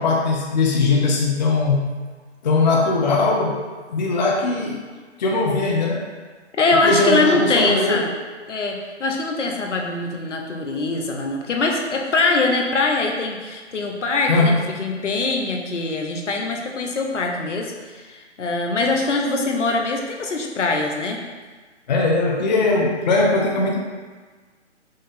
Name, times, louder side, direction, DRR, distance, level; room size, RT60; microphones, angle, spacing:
voice 1, 0.0-1.9 2.4-4.8 5.2-6.1 6.8-8.1 14.3-14.6 21.9-23.8, left 3 dB, 40° left, -1 dB, 0.5 m, -20 dB
voice 2, 6.6-8.1 8.5-21.2, left 3 dB, 80° left, 1 dB, 0.9 m, -23 dB
5.4 x 2.6 x 3.6 m, 1.4 s
hypercardioid pair, 150°, 36 cm